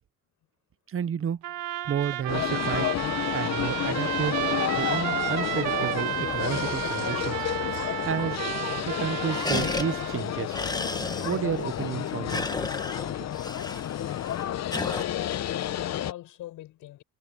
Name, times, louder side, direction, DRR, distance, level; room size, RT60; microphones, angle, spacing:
voice 1, 0.9-1.4 1.9-2.9 3.3-4.4 4.7-7.5 8.1-8.4 8.9-10.6 11.2-12.5 13.2-13.3, right 8 dB, 45° right, 0.9 m, -31 dB
Trumpet, 1.4-10.2, right 14 dB, 90° right, 1.6 m, -32 dB
sound 1, 2.1-7.4 7.8-7.9 8.1-8.6 8.9-15.0, left 2 dB, 15° left, 1.4 m, -37 dB
sound 2, 2.3-16.1, left 12 dB, 60° left, 0.9 m, -31 dB
voice 2, 14.6-17.0, left 14 dB, 90° left, 7.5 m, -41 dB
cardioid pair, 90°, 30 cm